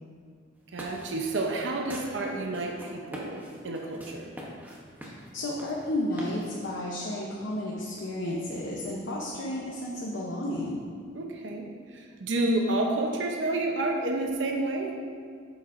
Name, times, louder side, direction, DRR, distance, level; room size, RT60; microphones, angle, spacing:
sound 1, 0.6-6.8, equal, 10° right, 0.9 m, -44 dB
voice 1, 0.7-4.3 11.1-15.0, right 2 dB, 65° right, 1 dB, 0.7 m, -30 dB
voice 2, 5.0-10.8, left 1 dB, 65° left, -4 dB, 0.8 m, -32 dB
8.3 x 7.0 x 2.6 m, 2.1 s
head